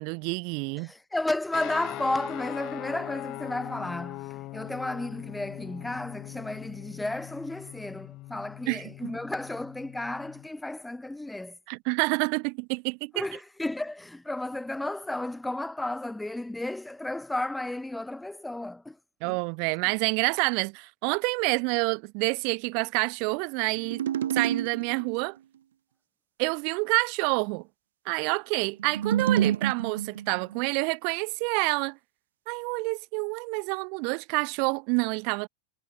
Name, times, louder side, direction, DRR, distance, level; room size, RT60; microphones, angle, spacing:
voice 1, 0.0-0.9 8.7-9.1 11.7-13.3 19.2-24.0 24.3-25.4 26.4-27.7 28.1-32.0 32.5-35.5, right 38 dB, 55° right, 0.5 m, -28 dB
voice 2, 0.8-11.5 13.1-19.0 19.2-19.4, left 2 dB, 5° left, 1.3 m, -33 dB
sound 1, 1.5-10.5, left 19 dB, 45° left, 1.2 m, -41 dB
sound 2, 23.8-25.2 28.8-30.6, right 10 dB, 85° right, 0.9 m, -28 dB
hypercardioid pair, 120°, 0 cm